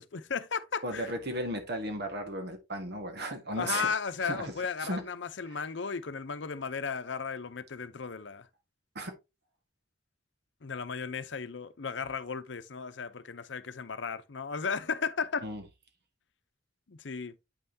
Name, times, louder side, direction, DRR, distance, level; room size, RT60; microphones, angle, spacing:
voice 1, 0.0-1.1 3.6-8.5 10.6-15.4 16.9-17.3, left 5 dB, 70° left, 0.7 m, -35 dB
voice 2, 0.8-3.9 4.2-4.5 4.8-5.0 5.5-5.6 8.9-9.1 15.4-15.6, right 1 dB, 60° right, 1.6 m, -35 dB
8.6 x 5.6 x 2.8 m
head